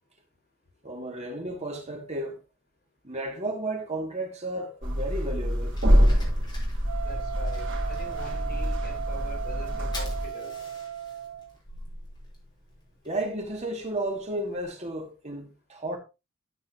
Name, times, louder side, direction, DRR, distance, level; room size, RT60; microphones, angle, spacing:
voice 1, 0.8-2.4 3.0-5.7 13.0-16.0, right 1 dB, 35° right, 2.5 m, -33 dB
sound 1, 4.8-10.3, equal, 65° right, 3.4 m, -25 dB
Fire, 5.0-14.6, left 1 dB, 20° left, 5.9 m, -49 dB
Wind instrument woodwind instrument, 6.8-11.5, right 9 dB, 85° right, 1.5 m, -37 dB
voice 2, 7.0-10.5, left 2 dB, 45° left, 6.7 m, -43 dB
13.5 x 8.8 x 3.0 m
head